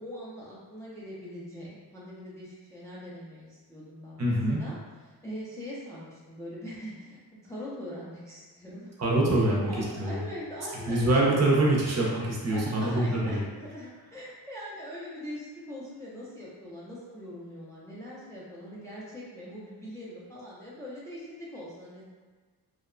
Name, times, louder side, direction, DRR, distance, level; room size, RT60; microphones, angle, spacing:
voice 1, 0.0-4.7 5.1-8.9 9.4-11.1 12.5-22.1, equal, 10° left, -7 dB, 0.4 m, -42 dB
voice 2, 4.2-4.6 9.0-9.7 10.0-10.2 10.9-13.4, right 1 dB, 40° right, -4 dB, 0.6 m, -24 dB
2.7 x 2.1 x 2.4 m, 1.4 s
wide cardioid pair, 135°, 40 cm